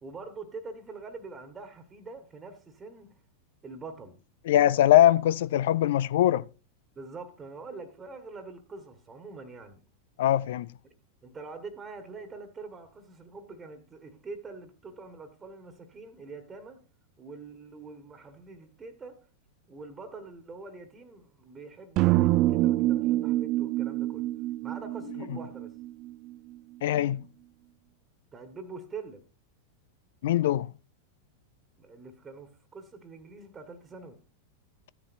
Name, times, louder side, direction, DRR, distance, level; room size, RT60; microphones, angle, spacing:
voice 1, 0.0-3.2 3.6-4.2 6.9-9.8 11.2-16.8 17.2-19.2 19.7-24.3 24.6-25.8 28.3-29.2 31.8-34.2, right 4 dB, 20° right, 1.5 m, -44 dB
voice 2, 4.5-6.5 10.2-10.7 26.8-27.2 30.2-30.7, left 12 dB, 55° left, 0.4 m, -22 dB
sound 1, 22.0-26.1, right 16 dB, 40° right, 0.4 m, -26 dB
14.0 x 10.0 x 2.6 m
figure-of-eight pair, 90°, 0 cm